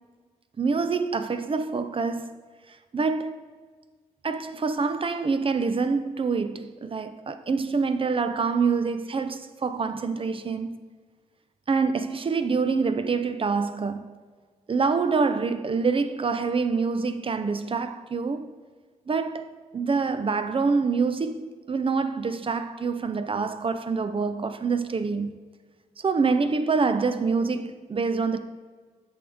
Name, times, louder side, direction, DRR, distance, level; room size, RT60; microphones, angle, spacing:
voice 1, 0.6-2.3 2.9-3.4 4.2-10.8 11.7-14.1 14.7-18.5 19.1-19.5 19.7-25.3 26.0-28.4, right 4 dB, 35° right, 0.6 m, -26 dB
8.3 x 5.5 x 3.5 m
hypercardioid pair, 45°, 16 cm